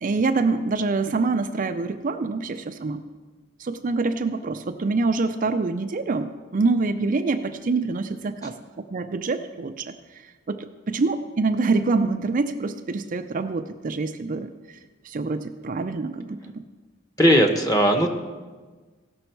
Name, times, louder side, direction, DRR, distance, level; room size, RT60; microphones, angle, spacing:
voice 1, 0.0-3.0 3.6-8.5 8.9-9.9 10.5-14.5 15.0-16.4, right 3 dB, 40° right, 7 dB, 0.4 m, -25 dB
voice 2, 17.2-18.1, equal, 15° left, 4 dB, 1.0 m, -18 dB
17.0 x 6.2 x 4.5 m, 1.4 s
head